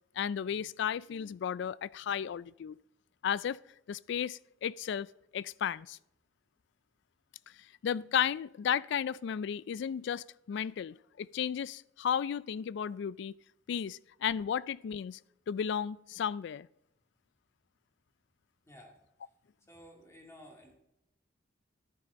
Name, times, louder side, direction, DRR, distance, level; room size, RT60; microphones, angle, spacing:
voice 1, 0.2-2.8 3.2-3.6 3.9-5.1 5.3-6.0 7.8-13.3 13.7-15.2 15.5-16.7, left 8 dB, 65° left, 0.3 m, -34 dB
voice 2, 18.7-19.0 19.7-20.8, equal, 15° left, 2.5 m, -54 dB
11.0 x 9.7 x 4.0 m
head